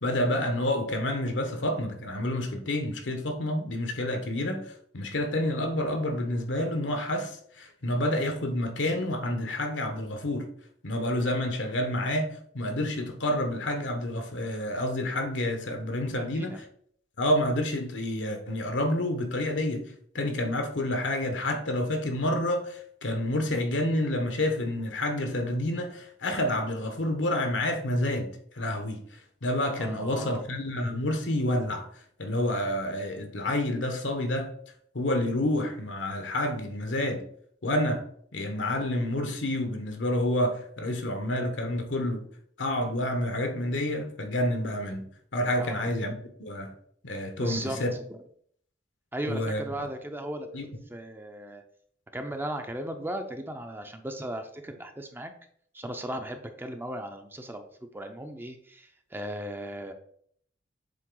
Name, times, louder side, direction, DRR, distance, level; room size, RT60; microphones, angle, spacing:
voice 1, 0.0-10.5 10.8-16.6 17.2-19.8 20.1-29.0 29.4-31.9 32.2-34.5 34.9-37.2 37.6-38.0 38.3-42.3 42.6-46.7 47.0-47.9 49.3-49.6 50.5-50.7, left 1 dB, 80° left, 1.1 m, -29 dB
voice 2, 16.2-16.6 29.8-30.4 45.6-45.9 47.4-48.2 49.1-51.6 52.1-55.3 55.7-59.9, right 1 dB, 10° right, 0.5 m, -37 dB
7.5 x 3.4 x 3.8 m
head